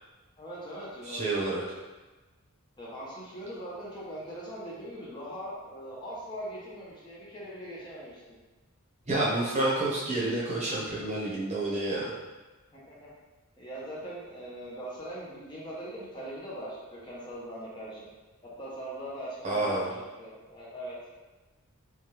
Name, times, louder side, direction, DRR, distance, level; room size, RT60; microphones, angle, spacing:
voice 1, 0.4-1.2 2.8-8.2 12.7-13.1 13.6-18.1 18.6-21.0, right 1 dB, 20° left, -7 dB, 0.6 m, -41 dB
voice 2, 1.1-1.6 9.1-12.1 19.4-19.9, right 2 dB, 30° right, -6 dB, 0.7 m, -29 dB
3.2 x 2.2 x 2.9 m, 1.2 s
head